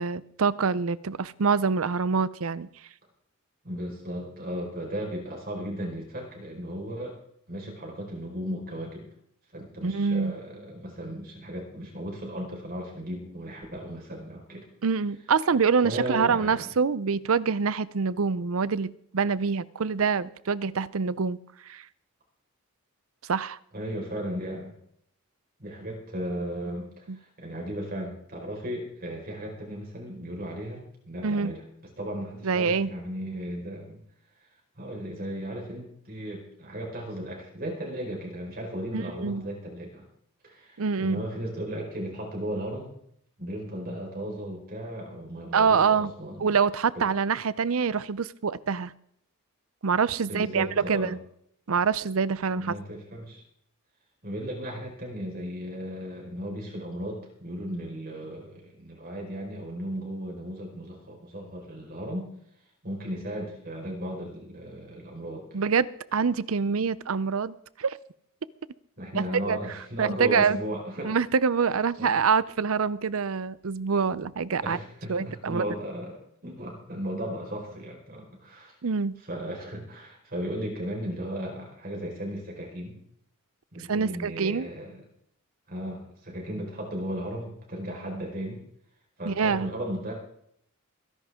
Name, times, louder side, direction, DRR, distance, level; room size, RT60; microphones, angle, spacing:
voice 1, 0.0-2.7 9.8-10.3 14.8-21.4 21.7-21.8 23.3-23.6 27.1-27.2 31.2-31.5 32.4-32.9 38.9-39.5 40.8-41.2 45.5-46.1 46.4-48.9 49.8-51.2 51.7-52.7 65.5-68.0 69.5-69.6 70.0-70.6 71.0-74.8 75.1-75.6 78.8-79.2 83.9-84.7 89.2-89.7, right 5 dB, 65° right, 19 dB, 0.6 m, -25 dB
voice 2, 3.6-7.2 7.5-9.1 9.5-14.6 15.8-16.7 23.7-24.7 25.6-31.6 32.0-34.0 34.7-40.1 40.4-42.9 43.4-46.5 46.9-47.1 50.2-51.1 52.5-53.4 54.2-62.3 62.8-65.5 69.0-71.1 71.7-72.2 74.6-76.2 76.4-78.8 79.2-83.0 83.7-85.0 85.7-88.6 89.2-90.1, equal, 45° right, -1 dB, 4.8 m, -36 dB
23.0 x 11.0 x 3.7 m, 0.70 s
head